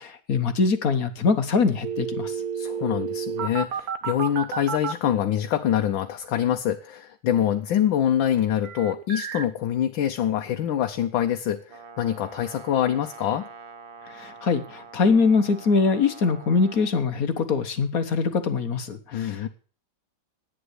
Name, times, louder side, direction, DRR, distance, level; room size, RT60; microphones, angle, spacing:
voice 1, 0.0-2.3 14.1-19.5, left 4 dB, 50° left, 9 dB, 1.4 m, -23 dB
sound 1, 1.8-4.9 8.6-9.5, right 7 dB, 60° right, 1.2 m, -30 dB
voice 2, 2.5-13.5 19.1-19.5, left 10 dB, 75° left, 5 dB, 1.5 m, -25 dB
Brass instrument, 11.7-16.9, right 5 dB, 80° right, 2.3 m, -45 dB
11.0 x 9.2 x 8.1 m, 0.41 s
omnidirectional pair, 2.1 m